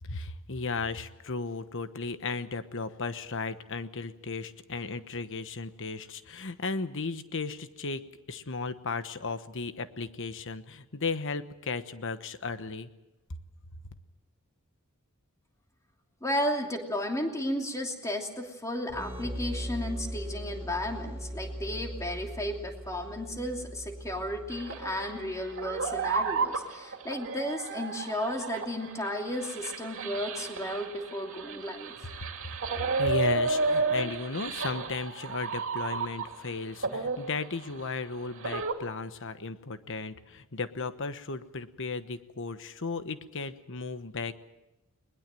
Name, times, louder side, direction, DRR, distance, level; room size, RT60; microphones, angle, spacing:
voice 1, 0.0-8.0 8.3-12.9 32.4-44.3, left 4 dB, 60° left, 11 dB, 1.2 m, -35 dB
voice 2, 16.2-31.9, left 1 dB, 15° left, 2 dB, 2.9 m, -34 dB
sound 1, 18.9-26.4, equal, 10° right, 5.9 m, -40 dB
sound 2, 24.5-36.5 36.8-38.7, right 3 dB, 60° right, 2.6 m, -32 dB
21.5 x 21.0 x 7.7 m, 0.97 s
head